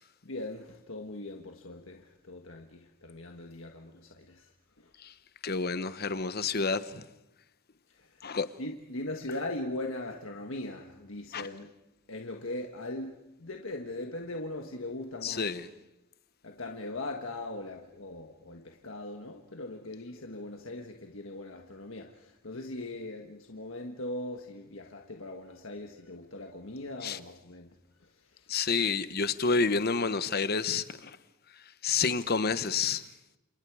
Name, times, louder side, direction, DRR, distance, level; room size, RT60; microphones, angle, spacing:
voice 1, 0.2-4.5 8.6-11.7 12.1-15.5 16.4-27.7, left 2 dB, 70° left, 1.5 m, -40 dB
voice 2, 5.4-7.0 8.2-8.5 11.3-11.5 15.2-15.7 27.0-27.2 28.5-31.2 31.8-33.0, left 4 dB, 50° left, 1.0 m, -29 dB
28.5 x 28.0 x 4.9 m
head